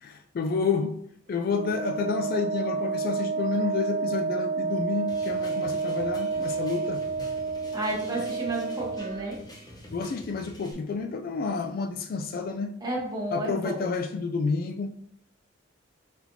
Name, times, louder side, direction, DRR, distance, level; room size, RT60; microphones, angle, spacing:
voice 1, 0.0-1.0 1.3-7.0 9.9-12.8 13.3-14.9, left 4 dB, 50° left, 0.3 m, -29 dB
Wind instrument woodwind instrument, 1.5-9.3, right 4 dB, 40° right, 0.3 m, -30 dB
sound 1, 5.1-10.7, left 1 dB, 20° left, 0.8 m, -47 dB
voice 2, 7.7-9.4 12.8-13.9, right 2 dB, 20° right, 1.2 m, -32 dB
4.2 x 4.2 x 2.7 m
head